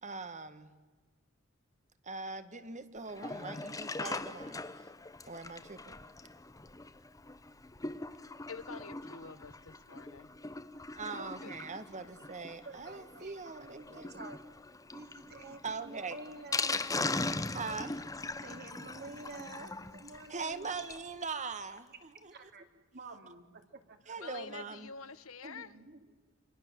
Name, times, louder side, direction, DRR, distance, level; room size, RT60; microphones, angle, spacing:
voice 1, 0.0-0.7 2.0-4.9 5.3-6.0 11.0-14.1 15.6-16.2 17.5-18.0 20.3-22.3 24.1-24.9, right 4 dB, 35° right, 11 dB, 1.8 m, -41 dB
Sink (filling or washing), 3.1-21.1 21.4-21.5 21.7-21.8 22.2-22.3, left 3 dB, 15° left, 1.0 m, -40 dB
voice 2, 8.5-10.3 11.1-11.6 24.2-25.7, left 5 dB, 85° left, 13 dB, 1.3 m, -47 dB
voice 3, 12.6-14.4 14.9-17.0 18.4-20.7 22.3-22.6 22.9-24.3 25.4-26.0, right 3 dB, 50° right, 5 dB, 3.2 m, -50 dB
29.5 x 26.0 x 7.8 m, 1.3 s
head